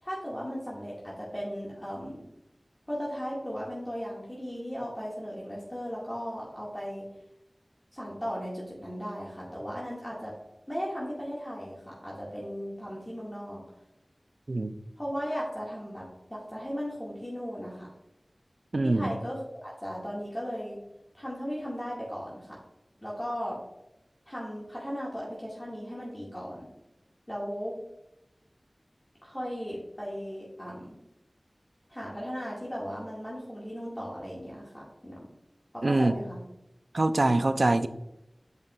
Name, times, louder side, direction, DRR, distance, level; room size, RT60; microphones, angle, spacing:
voice 1, 0.0-2.2 2.9-7.1 7.9-10.3 10.7-13.6 15.0-17.9 18.8-20.8 21.1-22.6 23.0-23.6 24.3-26.7 27.3-27.8 29.2-30.9 31.9-35.3 35.7-36.4, equal, 15° left, -6 dB, 1.9 m, -36 dB
voice 2, 18.7-19.1 35.8-36.1 36.9-37.9, right 2 dB, 70° right, 10 dB, 0.4 m, -24 dB
8.0 x 5.2 x 2.4 m, 0.86 s
wide cardioid pair, 55°, 0 cm